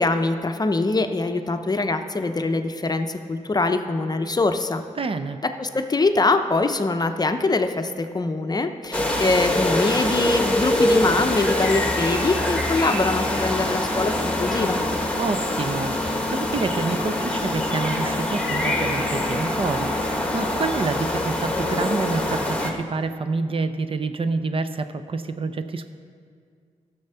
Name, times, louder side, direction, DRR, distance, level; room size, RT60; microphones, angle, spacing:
voice 1, 0.0-4.8 5.4-14.8, left 3 dB, 30° left, 7 dB, 0.6 m, -23 dB
voice 2, 5.0-5.4 15.2-25.9, right 4 dB, 40° right, 10 dB, 0.5 m, -28 dB
sound 1, 8.9-22.7, left 1 dB, 10° left, 1.3 m, -24 dB
11.5 x 6.9 x 5.6 m, 2.1 s
cardioid pair, 70°, 14 cm